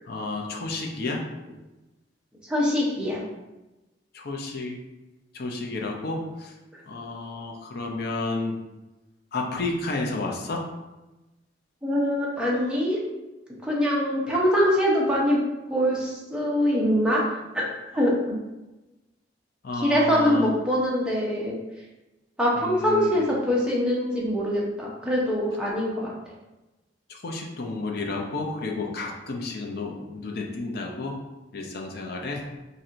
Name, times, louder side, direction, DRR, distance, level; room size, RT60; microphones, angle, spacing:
voice 1, 0.1-1.2 4.1-4.8 5.3-6.5 6.9-8.6 9.3-10.6 19.6-20.5 22.6-23.2 27.1-31.2 31.5-32.4, left 3 dB, 60° left, 0 dB, 0.6 m, -31 dB
voice 2, 2.5-3.2 11.8-13.0 13.6-15.4 15.7-17.2 17.5-17.7 17.9-18.1 19.8-21.6 22.4-26.1, equal, 5° right, -5 dB, 0.8 m, -23 dB
4.2 x 2.7 x 2.5 m, 1.1 s
head